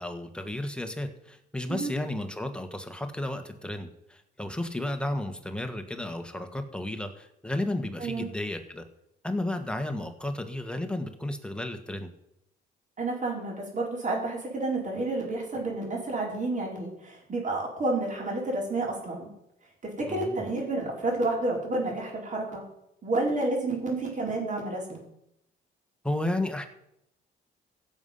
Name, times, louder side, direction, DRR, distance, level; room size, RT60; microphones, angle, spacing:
voice 1, 0.0-8.8 9.2-12.1 20.1-20.5 26.0-26.7, left 1 dB, 5° left, 6 dB, 1.8 m, -33 dB
voice 2, 13.0-19.3 19.8-22.6 23.0-25.0, right 2 dB, 40° right, -2 dB, 5.6 m, -30 dB
15.5 x 7.3 x 5.8 m, 0.79 s
cardioid pair, 90°, 20 cm